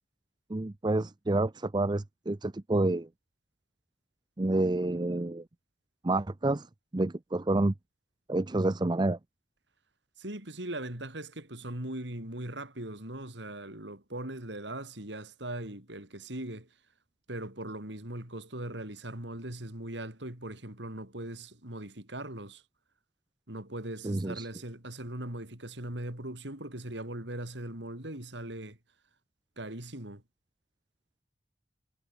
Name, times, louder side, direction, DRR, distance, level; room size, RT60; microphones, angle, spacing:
voice 1, 0.5-3.1 4.4-5.4 6.0-6.7 6.9-7.7 8.3-9.2 24.0-24.5, right 2 dB, 25° right, 0.6 m, -28 dB
voice 2, 10.2-16.7 17.3-22.6 23.5-28.8 29.6-30.2, right 1 dB, 70° right, 4.8 m, -40 dB
head